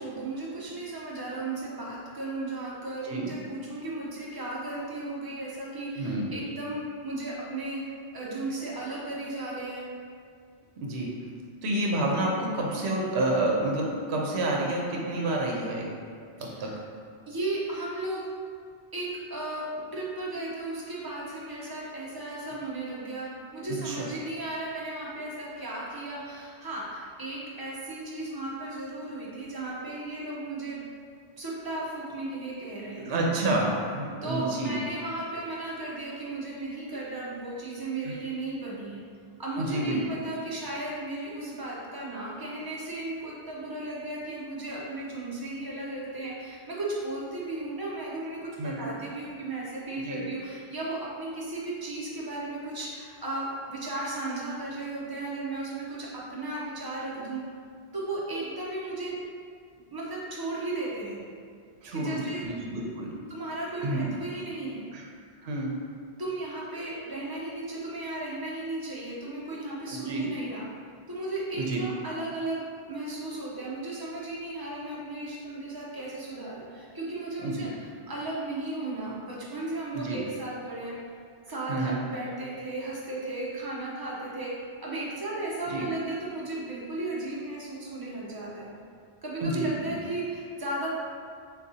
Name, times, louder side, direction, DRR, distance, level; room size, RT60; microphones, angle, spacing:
voice 1, 0.0-7.8 8.1-9.9 15.1-15.4 16.5-16.7 17.3-18.3 18.9-30.9 31.4-33.2 34.2-39.0 39.4-57.4 57.9-59.2 59.9-61.2 61.9-62.4 63.3-64.8 66.2-70.6 71.1-72.6 72.9-81.0 81.5-84.5 84.8-88.7 89.2-90.9, right 2 dB, 25° right, -5 dB, 0.7 m, -35 dB
voice 2, 6.0-6.3 10.8-11.1 11.6-15.9 16.4-16.7 23.7-24.1 33.0-34.7 38.0-38.1 39.6-40.0 48.6-48.9 50.0-50.2 61.8-63.1 63.8-64.1 64.9-65.0 65.4-65.7 69.9-70.3 71.6-71.8 77.4-77.7 79.9-80.2 81.7-82.0 85.7-85.8 89.4-89.9, right 1 dB, 75° right, -1 dB, 0.9 m, -29 dB
6.4 x 2.3 x 2.7 m, 2.2 s
omnidirectional pair, 1.1 m